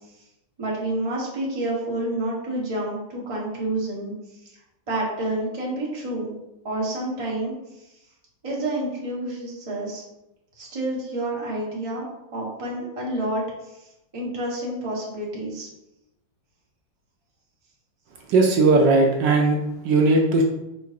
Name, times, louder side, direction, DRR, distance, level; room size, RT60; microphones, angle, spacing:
voice 1, 0.6-4.1 4.9-6.3 6.6-7.5 8.4-10.0 10.6-12.0 12.3-13.7 14.1-15.7, right 1 dB, 25° right, -5 dB, 0.8 m, -28 dB
voice 2, 18.3-19.6 19.8-20.4, right 3 dB, 75° right, 2 dB, 1.2 m, -18 dB
4.5 x 4.1 x 2.4 m, 0.92 s
omnidirectional pair, 2.1 m